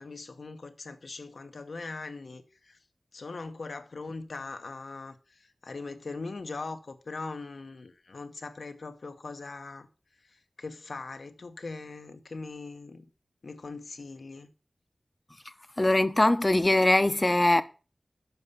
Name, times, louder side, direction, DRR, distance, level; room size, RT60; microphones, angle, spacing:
voice 1, 0.0-2.8 3.1-9.9 10.2-13.1 13.4-14.5, left 3 dB, 80° left, 1.0 m, -41 dB
voice 2, 15.8-17.6, left 1 dB, 30° left, 0.7 m, -22 dB
7.0 x 5.5 x 6.8 m
wide cardioid pair, 60°, 0 cm